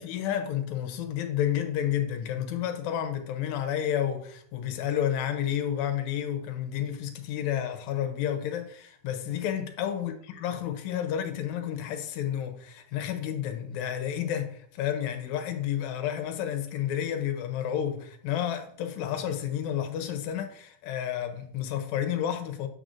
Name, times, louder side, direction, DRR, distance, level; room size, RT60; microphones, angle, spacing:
voice 1, 0.0-22.7, left 10 dB, 75° left, 1.9 m, -31 dB
6.5 x 6.2 x 2.5 m
omnidirectional pair, 3.6 m